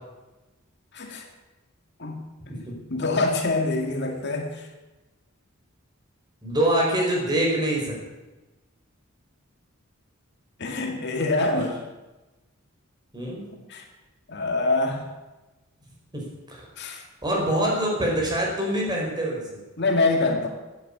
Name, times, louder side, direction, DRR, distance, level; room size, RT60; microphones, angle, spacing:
voice 1, 0.9-1.2 2.0-2.2 2.5-2.6 2.9-4.7 10.6-11.7 13.7-13.9 14.3-15.1 16.8-17.0 19.8-20.5, left 2 dB, 55° left, 2 dB, 2.1 m, -25 dB
voice 2, 6.4-7.9 11.5-11.7 13.1-13.5 16.1-16.6 17.2-19.6, right 1 dB, 20° right, -2 dB, 4.7 m, -25 dB
14.5 x 9.4 x 8.5 m, 1.1 s
head